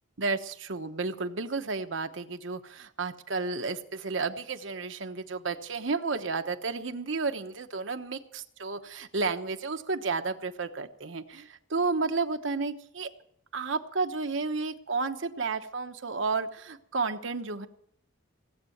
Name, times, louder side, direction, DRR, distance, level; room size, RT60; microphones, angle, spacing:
voice 1, 0.2-13.1 13.5-17.7, right 4 dB, 70° right, 7 dB, 1.1 m, -32 dB
17.5 x 8.2 x 8.0 m, 0.71 s
head